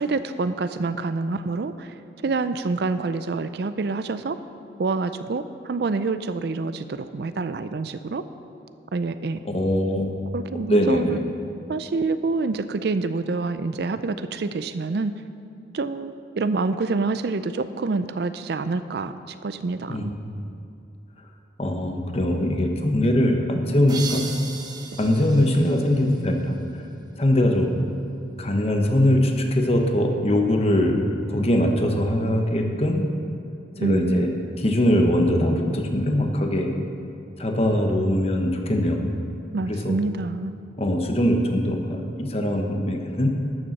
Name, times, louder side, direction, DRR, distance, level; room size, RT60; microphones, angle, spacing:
voice 1, 0.0-1.9 2.2-4.4 4.8-8.2 8.9-9.4 10.3-11.2 11.7-15.1 15.7-20.1 33.8-34.3 39.5-40.6, right 3 dB, 60° right, 12 dB, 0.4 m, -27 dB
voice 2, 9.5-10.1 10.7-11.2 19.9-20.3 21.6-24.2 25.0-26.9 27.2-27.7 28.4-31.0 31.3-33.1 33.8-36.7 37.4-39.0 39.7-40.0 40.8-43.3, left 1 dB, 35° left, 3 dB, 1.1 m, -22 dB
sound 1, 23.9-26.6, right 4 dB, 20° right, 0.8 m, -37 dB
12.5 x 7.0 x 6.5 m, 2.6 s
head